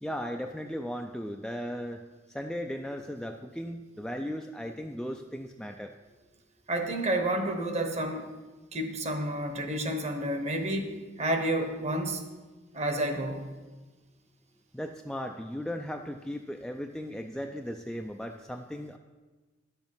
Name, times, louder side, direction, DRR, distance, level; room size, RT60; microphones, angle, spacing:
voice 1, 0.0-2.0 2.3-5.9 14.7-19.0, equal, 5° left, 3 dB, 0.3 m, -36 dB
voice 2, 6.7-8.3 8.7-12.2 12.7-13.5, right 1 dB, 35° right, 6 dB, 1.0 m, -30 dB
10.5 x 7.1 x 5.5 m, 1.3 s
head